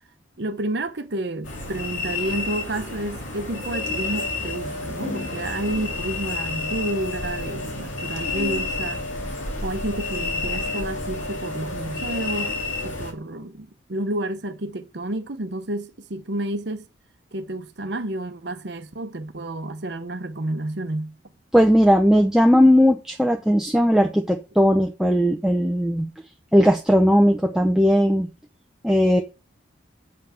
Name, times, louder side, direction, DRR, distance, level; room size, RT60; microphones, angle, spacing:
voice 1, 0.4-9.0 9.6-16.9 17.3-21.1, right 1 dB, 60° right, 0.9 m, -30 dB
sound 1, 1.4-13.1, left 3 dB, 85° left, 2.7 m, -30 dB
voice 2, 21.5-26.1 26.5-28.3 28.8-29.2, equal, 5° right, 0.7 m, -17 dB
7.8 x 5.8 x 5.8 m
head